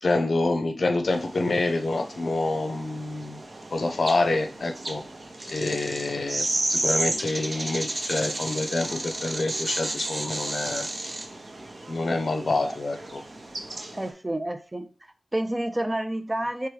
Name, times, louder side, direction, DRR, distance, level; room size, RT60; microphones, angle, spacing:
voice 1, 0.0-3.4 3.7-5.0 5.5-10.9 11.9-13.2, left 2 dB, 70° left, 7 dB, 0.7 m, -27 dB
sound 1, 1.1-14.1, right 2 dB, 55° right, 0.9 m, -33 dB
voice 2, 13.9-16.7, right 1 dB, 20° right, 9 dB, 0.5 m, -29 dB
4.7 x 3.5 x 3.3 m, 0.35 s
wide cardioid pair, 80°, 0 cm